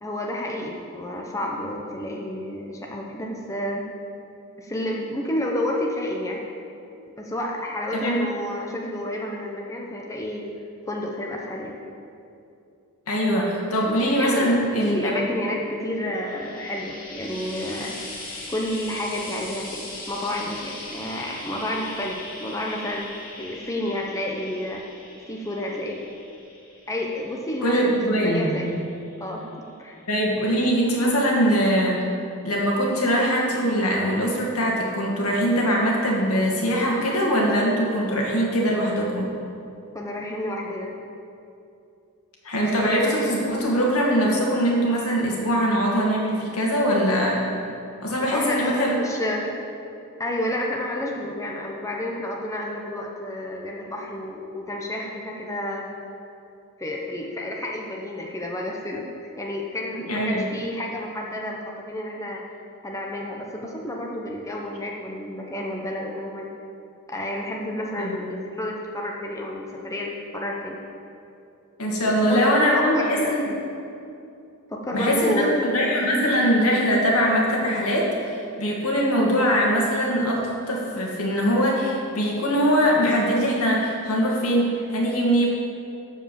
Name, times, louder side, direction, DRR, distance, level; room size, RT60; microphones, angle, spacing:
voice 1, 0.0-3.8 4.6-6.4 7.2-10.4 10.9-11.7 14.0-14.5 14.8-17.9 18.5-24.8 25.3-26.0 26.9-28.7 29.2-29.5 29.8-30.0 39.9-40.9 48.3-49.5 50.2-55.8 56.8-62.4 62.8-66.5 67.1-70.8 72.3-73.3 74.7-75.7, left 1 dB, 15° left, -1 dB, 0.9 m, -30 dB
voice 2, 13.1-15.2 27.6-28.6 30.1-32.0 32.4-39.3 42.4-47.4 48.0-49.0 60.1-60.5 68.0-68.2 71.8-73.4 74.9-85.5, equal, 75° left, -3 dB, 2.3 m, -22 dB
Frying (food), 15.9-29.3 30.2-30.3, left 2 dB, 40° left, 2.4 m, -40 dB
12.5 x 5.0 x 7.5 m, 2.6 s
head